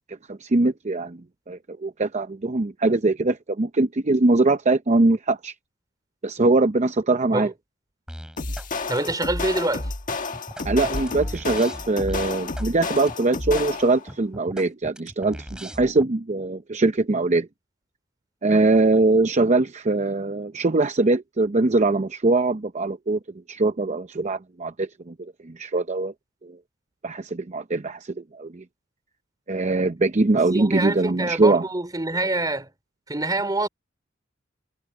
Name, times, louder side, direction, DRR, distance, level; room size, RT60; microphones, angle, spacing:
voice 1, 0.1-5.5 6.2-7.5 10.6-17.5 18.4-23.2 23.5-26.1 26.4-26.6 27.0-28.6 29.5-31.6, right 2 dB, 35° right, 0.7 m, -22 dB
sound 1, 8.1-8.7 9.0-9.7 10.1-12.7 13.0-13.2 13.6-13.7 14.1-16.1, equal, 5° right, 5.1 m, -40 dB
sound 2, 8.4-14.1, left 3 dB, 45° left, 1.5 m, -30 dB
voice 2, 8.9-9.9 30.5-32.7 33.1-33.7, right 2 dB, 20° right, 3.6 m, -25 dB
head